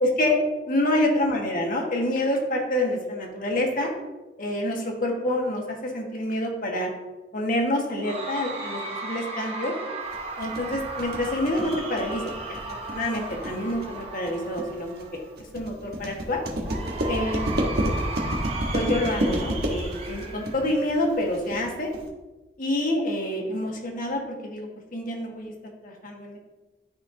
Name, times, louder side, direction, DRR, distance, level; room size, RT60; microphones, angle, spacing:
voice 1, 0.0-0.4 0.7-3.9 4.4-6.9 7.3-9.8 10.4-15.2 15.5-16.4 17.1-17.6 18.7-21.9 22.6-25.5 25.8-26.4, left 1 dB, 50° left, 0 dB, 1.5 m, -27 dB
Cheering / Crowd, 8.0-15.3 16.6-21.3, right 3 dB, 35° right, 1.1 m, -36 dB
sound 1, 10.1-22.1, right 1 dB, 65° right, 1.3 m, -29 dB
12.5 x 4.3 x 2.8 m, 1.1 s
head